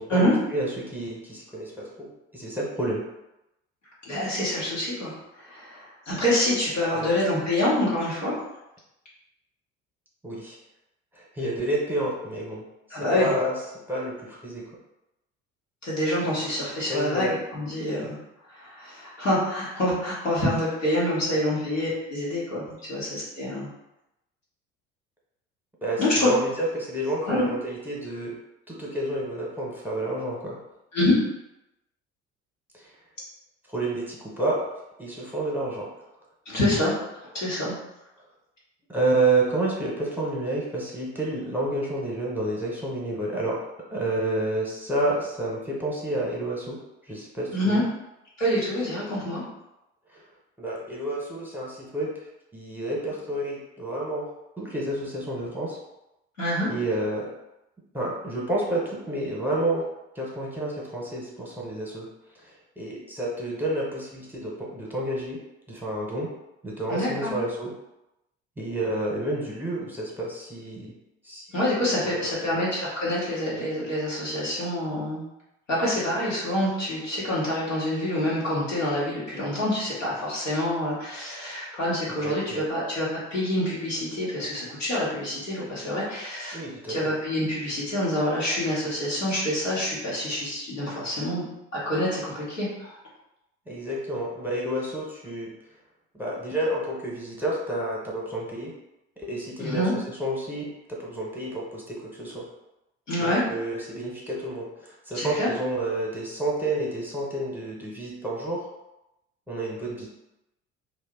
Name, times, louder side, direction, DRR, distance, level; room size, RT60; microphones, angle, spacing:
voice 1, 0.0-3.0 6.9-7.1 10.2-10.6 11.2-12.6 12.9-13.5 13.9-14.7 16.9-17.4 21.3-21.4 25.8-28.4 28.7-30.6 32.7-32.9 33.7-34.6 35.0-35.9 38.9-43.6 43.9-46.8 47.0-47.8 50.6-52.1 52.5-54.3 54.6-55.8 56.7-57.3 57.9-59.8 60.2-62.1 62.4-65.4 65.7-66.3 66.6-67.7 68.6-70.9 71.2-71.5 72.0-72.7 82.2-82.7 86.5-87.1 93.7-95.5 96.1-98.7 99.2-102.4 103.2-108.7 109.5-110.1, right 1 dB, 5° right, -4 dB, 0.9 m, -29 dB
voice 2, 4.0-8.3 12.9-13.4 15.8-18.2 18.5-23.7 26.0-26.3 27.2-27.5 30.9-31.1 36.5-37.0 37.3-37.8 47.5-47.8 48.4-49.4 56.4-56.7 66.9-67.3 71.5-75.2 75.7-86.6 86.9-91.4 91.7-93.0 99.6-99.9 103.1-103.4 105.1-105.5, left 1 dB, 85° left, -8 dB, 1.1 m, -26 dB
2.6 x 2.2 x 3.5 m, 0.91 s
figure-of-eight pair, 60°, 37 cm